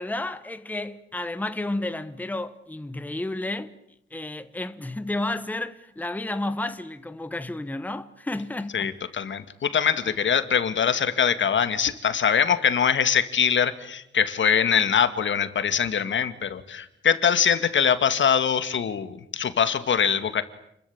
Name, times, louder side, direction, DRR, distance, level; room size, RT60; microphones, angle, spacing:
voice 1, 0.0-3.7 4.1-9.0 10.1-10.2, left 2 dB, 10° left, 1.2 m, -31 dB
voice 2, 8.7-20.4, left 7 dB, 75° left, 2.1 m, -23 dB
29.5 x 22.5 x 8.7 m
wide cardioid pair, 160°, 20 cm